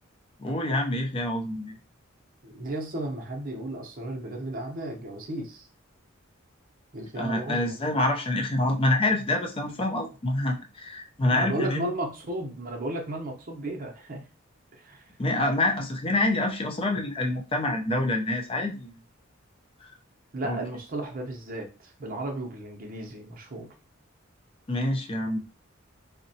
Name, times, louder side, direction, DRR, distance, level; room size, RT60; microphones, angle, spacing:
voice 1, 0.4-1.8 7.2-11.8 15.2-19.0 19.8-19.9 20.4-20.6 24.7-25.4, left 1 dB, 25° left, 3 dB, 0.4 m, -26 dB
voice 2, 2.4-5.7 6.9-7.7 11.3-14.2 14.8-15.0 20.3-23.7, right 1 dB, 45° right, 2 dB, 0.7 m, -34 dB
3.8 x 2.1 x 2.7 m, 0.34 s
head